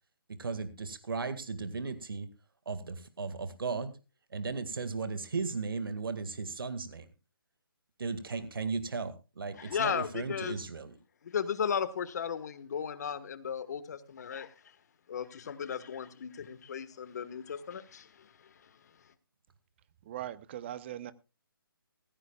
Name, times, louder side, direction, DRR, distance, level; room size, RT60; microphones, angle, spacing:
voice 1, 0.3-2.3 2.7-4.0 4.3-7.1 8.0-11.0, right 4 dB, 70° right, 2.0 m, -36 dB
voice 2, 9.6-10.6 11.2-14.5 15.1-18.3 18.6-18.7, left 7 dB, 45° left, 1.5 m, -35 dB
voice 3, 20.1-21.1, right 12 dB, 30° right, 0.8 m, -40 dB
17.5 x 16.0 x 2.4 m
hypercardioid pair, 155°, 12 cm